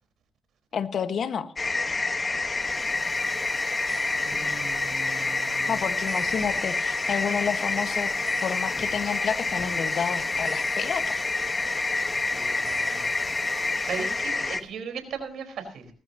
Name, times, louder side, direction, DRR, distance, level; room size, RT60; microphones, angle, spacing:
voice 1, 0.7-1.5 5.7-8.1 8.4-11.2, left 7 dB, 65° left, 10 dB, 1.4 m, -30 dB
sound 1, 1.6-14.6, left 3 dB, 30° left, 1.3 m, -28 dB
sound 2, 2.5-14.6, equal, 5° left, 4.4 m, -39 dB
voice 2, 4.2-5.8 12.3-13.1 13.5-15.9, right 5 dB, 75° right, 7 dB, 4.4 m, -38 dB
19.5 x 14.5 x 2.9 m, 0.40 s
cardioid pair, 70°, 0 cm